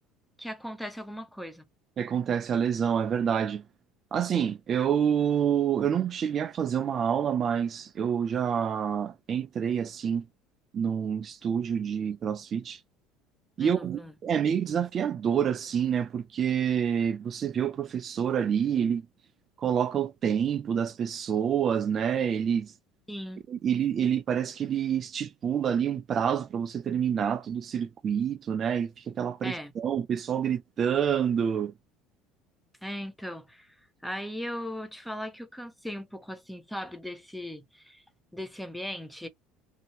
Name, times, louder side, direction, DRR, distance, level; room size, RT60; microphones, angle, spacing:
voice 1, 0.4-1.6 13.6-14.1 23.1-23.4 29.4-29.7 32.8-33.7 34.0-38.0 38.3-39.3, equal, 5° left, 0.6 m, -38 dB
voice 2, 2.0-3.6 4.1-10.2 10.7-12.8 13.6-19.0 19.6-22.7 23.5-31.7, right 8 dB, 40° right, 0.3 m, -27 dB
2.8 x 2.7 x 2.8 m
supercardioid pair, 100°, 0 cm